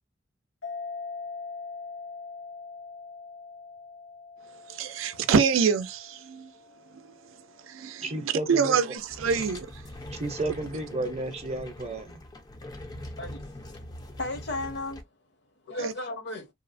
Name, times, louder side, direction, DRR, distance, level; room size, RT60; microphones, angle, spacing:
sound 1, 0.6-7.7, left 4 dB, 85° left, 0.5 m, -42 dB
voice 1, 4.7-6.5 6.9-7.1 7.7-9.7 15.8-15.9, right 6 dB, 85° right, 0.4 m, -26 dB
voice 2, 8.0-9.0 10.1-12.2, right 2 dB, 35° right, 0.6 m, -33 dB
sound 2, 9.0-15.0, left 1 dB, 20° left, 0.4 m, -42 dB
voice 3, 13.2-15.0 15.6-16.5, left 2 dB, 60° left, 0.8 m, -35 dB
2.7 x 2.0 x 2.5 m
head